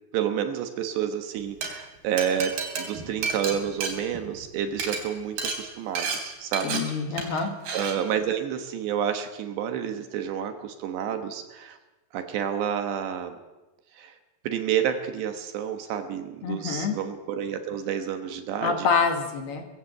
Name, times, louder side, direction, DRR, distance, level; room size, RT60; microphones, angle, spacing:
voice 1, 0.1-6.8 7.2-7.5 7.7-11.8 12.1-13.4 14.0-14.1 14.4-18.9, right 9 dB, 70° right, 7 dB, 3.1 m, -29 dB
Glass, 1.4-1.7 2.2-4.5 4.7-5.0 5.4-5.6 6.0-6.2 6.5-6.8 7.2-7.4 7.7-7.9, right 5 dB, 50° right, 4.7 m, -30 dB
voice 2, 6.6-7.5 16.4-17.0 18.6-19.7, left 5 dB, 60° left, 5 dB, 3.4 m, -26 dB
21.0 x 16.5 x 7.5 m, 1.1 s
omnidirectional pair, 5.6 m